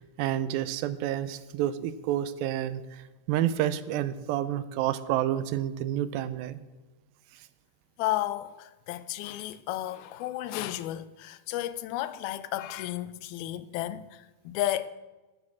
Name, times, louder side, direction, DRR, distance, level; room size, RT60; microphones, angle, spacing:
voice 1, 0.2-2.8 3.3-6.6, right 12 dB, 80° right, 2.3 m, -29 dB
voice 2, 8.0-14.9, left 14 dB, 90° left, 2.5 m, -33 dB
10.5 x 9.6 x 6.1 m
omnidirectional pair, 4.2 m